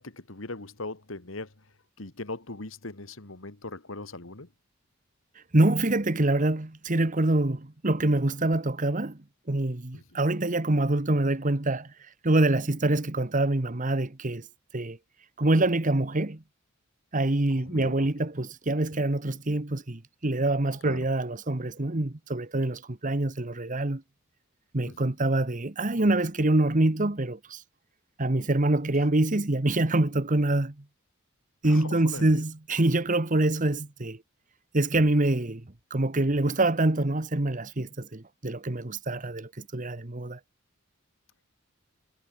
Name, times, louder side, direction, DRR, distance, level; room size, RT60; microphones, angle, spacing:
voice 1, 0.0-1.7 2.0-4.5 9.9-10.2 17.5-18.1 20.8-21.1 24.9-25.1 31.6-32.4 39.1-39.2, left 2 dB, 70° left, 2.2 m, -40 dB
voice 2, 5.5-9.2 9.5-11.9 12.2-14.5 14.7-15.0 15.4-16.4 17.1-24.0 24.7-27.6 28.2-30.7 31.6-34.2 34.7-35.6 35.9-40.4, right 2 dB, 40° right, 1.3 m, -25 dB
head